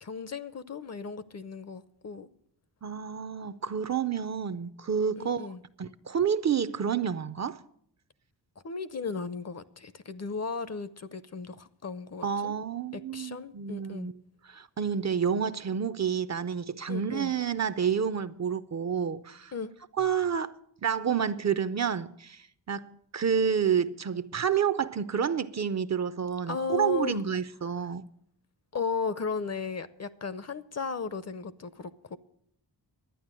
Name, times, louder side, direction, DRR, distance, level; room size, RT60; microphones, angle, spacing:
voice 1, 0.0-2.3 5.2-5.6 8.6-12.5 12.9-14.1 16.9-17.3 19.5-19.7 26.5-27.2 28.7-32.2, left 4 dB, 40° left, 0.6 m, -35 dB
voice 2, 2.8-5.5 5.8-7.6 12.2-14.1 14.5-19.5 20.0-28.1, right 7 dB, 40° right, 0.5 m, -29 dB
11.5 x 9.5 x 7.4 m
wide cardioid pair, 130°, 41 cm